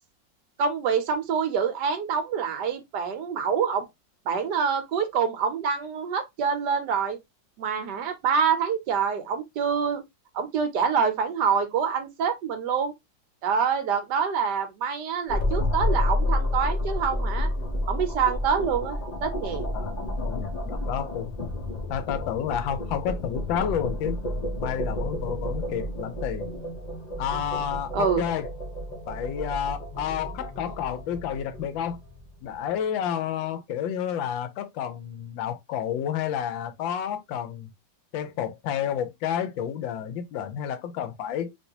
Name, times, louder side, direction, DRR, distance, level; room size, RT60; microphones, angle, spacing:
voice 1, 0.6-3.9 4.3-7.2 7.6-10.0 10.3-12.9 13.4-17.5 17.9-19.7 27.9-28.2, right 6 dB, 70° right, 1.2 m, -26 dB
sound 1, 15.3-32.5, left 1 dB, 45° left, 0.5 m, -30 dB
voice 2, 19.7-21.5 21.9-24.2 24.6-26.5 27.2-28.5 29.1-32.0 32.4-37.7 38.1-41.6, left 9 dB, 85° left, 1.3 m, -30 dB
3.2 x 2.9 x 2.7 m
omnidirectional pair, 2.1 m